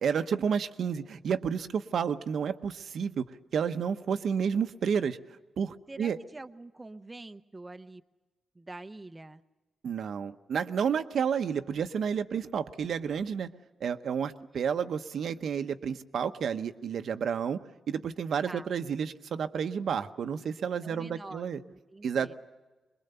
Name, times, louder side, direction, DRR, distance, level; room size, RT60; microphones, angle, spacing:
voice 1, 0.0-3.2 3.5-5.2 5.6-6.2 9.8-13.5 13.8-17.6 17.9-21.6 22.0-22.3, right 7 dB, 70° right, 8 dB, 0.9 m, -30 dB
voice 2, 5.9-8.0 8.6-9.4 14.4-14.5 18.4-18.7 20.8-22.3, right 2 dB, 15° right, 8 dB, 0.7 m, -45 dB
23.5 x 21.5 x 6.8 m, 1.2 s
wide cardioid pair, 130°, 0 cm